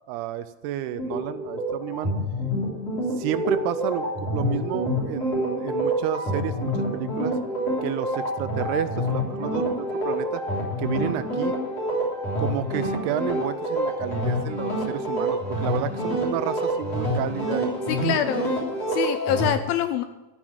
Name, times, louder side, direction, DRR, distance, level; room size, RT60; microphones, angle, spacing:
voice 1, 0.1-2.1 3.2-7.4 7.8-10.4 10.8-11.6 12.4-18.4 18.7-19.1, right 12 dB, 85° right, 12 dB, 2.6 m, -31 dB
sound 1, 0.9-19.5, equal, 40° left, 4.1 m, -27 dB
voice 2, 17.9-18.5 18.9-20.0, left 10 dB, 80° left, 10 dB, 2.2 m, -25 dB
13.5 x 6.1 x 8.7 m, 1.1 s
omnidirectional pair, 4.7 m